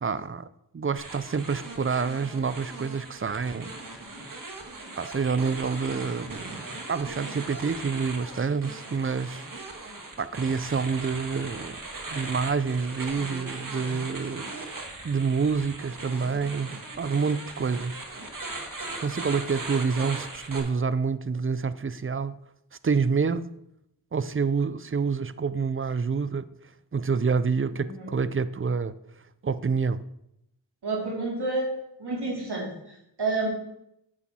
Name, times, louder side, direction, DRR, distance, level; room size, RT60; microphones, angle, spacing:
voice 1, 0.0-3.7 5.0-6.6 6.9-9.7 10.2-11.8 12.1-14.5 15.0-18.0 19.0-22.4 22.8-23.5 24.1-26.5 26.9-29.0 29.4-30.1, right 5 dB, 30° right, 15 dB, 0.5 m, -28 dB
sound 1, 1.0-20.6, right 2 dB, 45° right, 1.8 m, -39 dB
voice 2, 27.8-28.1 30.8-31.7 32.0-33.5, right 3 dB, 65° right, -2 dB, 2.4 m, -30 dB
9.3 x 7.3 x 4.3 m, 0.81 s
wide cardioid pair, 60°, 43 cm